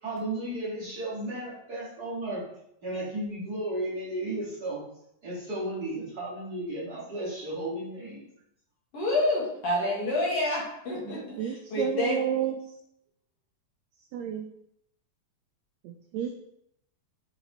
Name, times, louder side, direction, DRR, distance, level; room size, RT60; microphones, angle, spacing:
voice 1, 0.0-2.4 2.8-4.8 5.2-8.3, right 1 dB, 35° right, -8 dB, 2.1 m, -34 dB
voice 2, 8.9-12.2, left 1 dB, 55° left, -5 dB, 2.6 m, -28 dB
voice 3, 11.4-12.6 14.1-14.4 15.8-16.4, right 9 dB, 85° right, 5 dB, 1.5 m, -30 dB
8.1 x 4.7 x 3.1 m, 0.76 s
omnidirectional pair, 3.6 m